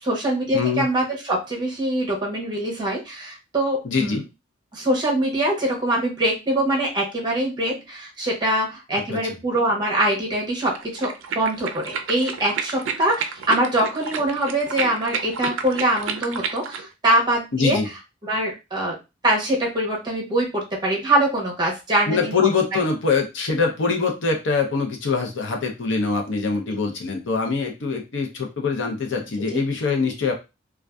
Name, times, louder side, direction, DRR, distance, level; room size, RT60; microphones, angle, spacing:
voice 1, 0.0-4.2 4.7-17.8 18.2-19.0 19.2-22.3 29.5-29.6, right 1 dB, 25° right, -2 dB, 0.8 m, -23 dB
voice 2, 0.5-0.9 3.8-4.2 9.1-9.4 17.5-17.9 22.1-30.3, left 4 dB, 70° left, 2 dB, 0.7 m, -23 dB
sound 1, 10.7-16.9, right 6 dB, 85° right, 0.4 m, -31 dB
2.5 x 2.3 x 2.2 m, 0.26 s
head